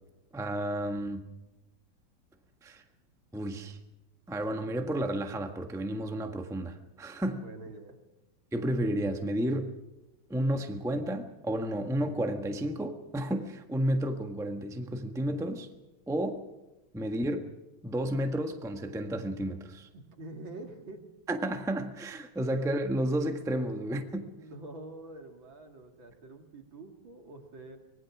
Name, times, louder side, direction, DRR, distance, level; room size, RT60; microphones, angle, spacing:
voice 1, 0.3-1.3 2.6-2.8 3.3-3.8 4.3-7.4 8.5-9.8 10.3-15.7 16.1-16.5 16.9-17.5 17.8-19.9 21.3-24.3, right 1 dB, ahead, 5 dB, 1.1 m, -32 dB
voice 2, 7.3-8.0 19.9-21.0 24.1-27.8, right 2 dB, 65° right, 3 dB, 3.2 m, -46 dB
25.0 x 19.5 x 6.0 m, 1.0 s
omnidirectional pair, 2.4 m